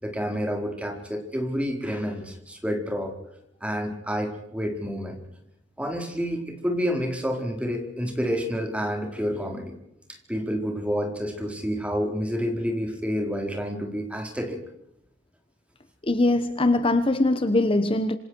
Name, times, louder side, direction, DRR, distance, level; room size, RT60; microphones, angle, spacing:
voice 1, 0.0-3.2 3.6-5.2 5.8-9.8 10.1-14.6, equal, 5° right, 4.3 m, -29 dB
voice 2, 16.1-18.2, left 2 dB, 30° left, 1.1 m, -22 dB
27.0 x 27.0 x 4.7 m
head